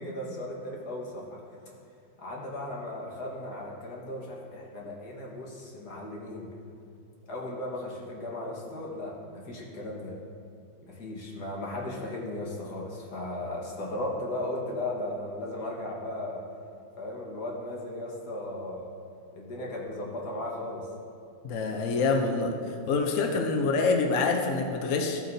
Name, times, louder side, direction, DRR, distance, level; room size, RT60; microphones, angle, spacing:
voice 1, 0.0-1.4 2.2-6.5 7.3-10.1 10.9-16.4 17.0-18.9 19.3-20.9, left 1 dB, 50° left, -2 dB, 1.9 m, -36 dB
voice 2, 21.4-22.5 22.9-25.2, left 4 dB, 70° left, 4 dB, 0.7 m, -26 dB
14.5 x 7.7 x 2.7 m, 2.6 s
omnidirectional pair, 2.3 m